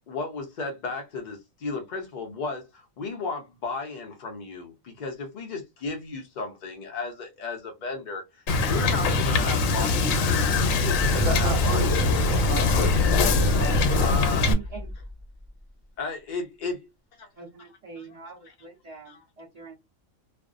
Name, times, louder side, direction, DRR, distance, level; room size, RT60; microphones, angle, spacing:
voice 1, 0.1-12.1 13.3-13.4 13.9-14.5 16.0-16.9 17.2-17.3 18.0-18.1 19.1-19.2, left 3 dB, 70° left, 0.4 m, -34 dB
Wind / Boat Water vehicle, 8.5-14.5, left 3 dB, 90° left, 1.0 m, -23 dB
sound 1, 10.6-15.5, equal, 20° right, 1.2 m, -29 dB
voice 2, 11.1-13.0 13.4-14.1, right 2 dB, 70° right, 1.0 m, -33 dB
voice 3, 14.5-14.9 17.4-19.7, right 7 dB, 35° right, 0.8 m, -42 dB
2.5 x 2.0 x 2.4 m
omnidirectional pair, 1.4 m